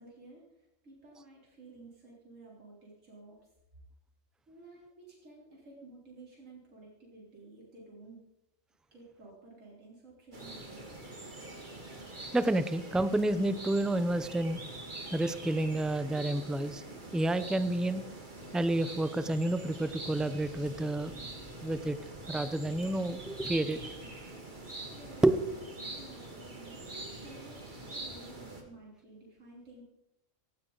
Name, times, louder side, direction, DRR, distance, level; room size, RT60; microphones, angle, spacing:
voice 1, 0.0-3.4 4.5-8.2 8.9-10.8 24.9-25.3 25.6-29.8, right 2 dB, 70° right, -4 dB, 4.0 m, -53 dB
sound 1, 10.3-28.6, right 2 dB, 35° right, 2.3 m, -44 dB
voice 2, 12.3-14.6 15.1-16.8 17.1-18.0 18.5-21.1 21.6-22.0 22.3-23.8 25.2-25.4, right 1 dB, ahead, 12 dB, 0.4 m, -29 dB
17.0 x 16.0 x 4.0 m, 0.85 s
omnidirectional pair, 1.4 m